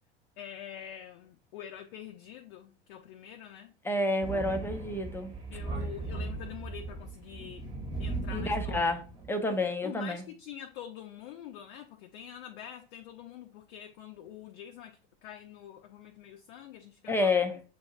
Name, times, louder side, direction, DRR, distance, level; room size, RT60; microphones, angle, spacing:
voice 1, 0.4-3.7 5.5-7.6 8.0-9.0 9.5-17.3, left 10 dB, 55° left, 0.6 m, -45 dB
voice 2, 3.8-5.3 8.3-9.0 9.3-10.2 17.1-17.6, left 2 dB, 5° left, 0.5 m, -29 dB
Thunder, 4.2-9.3, right 3 dB, 15° right, 1.1 m, -37 dB
7.2 x 2.6 x 2.3 m
figure-of-eight pair, 75°, 32 cm